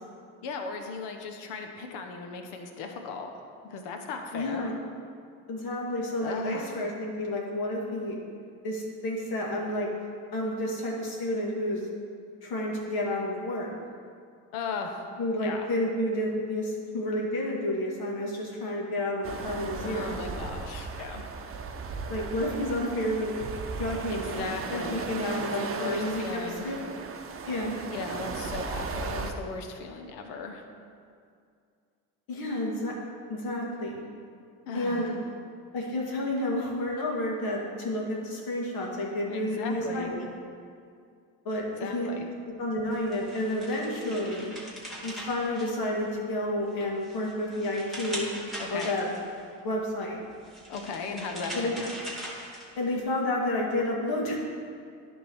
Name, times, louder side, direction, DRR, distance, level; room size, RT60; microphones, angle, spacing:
voice 1, 0.4-3.3 3.7-4.7 6.2-6.9 14.5-15.1 15.4-15.7 19.8-21.3 24.1-25.0 25.6-26.7 27.9-30.6 34.7-35.2 39.3-40.1 41.8-42.3 48.6-48.9 50.7-51.9, left 4 dB, 85° left, 4 dB, 1.1 m, -37 dB
voice 2, 4.3-4.8 5.5-8.2 8.6-9.9 10.3-11.9 12.4-13.7 15.2-20.2 22.1-23.4 23.8-26.7 27.5-27.8 32.3-32.9 33.3-34.1 34.7-35.1 35.7-40.3 41.4-42.1 42.5-44.5 45.0-48.3 48.7-49.1 49.6-50.2 51.5-51.7 52.8-54.4, left 1 dB, 60° left, -2 dB, 2.0 m, -30 dB
sound 1, 19.2-29.3, right 5 dB, 35° right, 0.8 m, -36 dB
sound 2, 42.9-46.3 46.7-49.4 50.3-53.0, equal, ahead, 2.3 m, -41 dB
10.5 x 3.8 x 6.3 m, 2.3 s
supercardioid pair, 90°, 41 cm